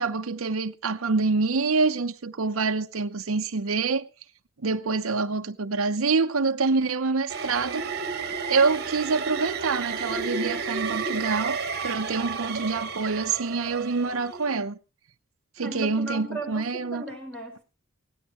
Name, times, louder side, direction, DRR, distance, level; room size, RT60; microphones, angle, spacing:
voice 1, 0.0-4.0 4.6-7.8 8.5-11.6 11.8-14.8 15.6-17.0, right 4 dB, 70° right, 0.8 m, -26 dB
sound 1, 7.3-14.6, right 5 dB, 50° right, 1.5 m, -32 dB
voice 2, 15.6-17.6, right 2 dB, 5° left, 5.0 m, -36 dB
18.0 x 16.0 x 3.1 m
head